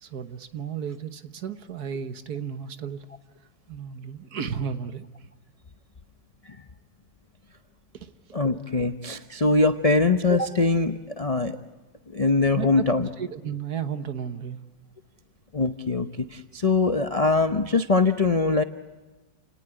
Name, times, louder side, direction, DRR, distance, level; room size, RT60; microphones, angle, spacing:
voice 1, 0.0-3.0 3.7-5.1 8.0-8.1 12.5-12.8 13.2-14.6, right 7 dB, 60° right, 10 dB, 1.5 m, -33 dB
voice 2, 8.3-11.6 12.1-13.1 15.5-18.6, left 3 dB, 50° left, 7 dB, 0.4 m, -22 dB
30.0 x 18.5 x 10.0 m, 1.2 s
omnidirectional pair, 2.0 m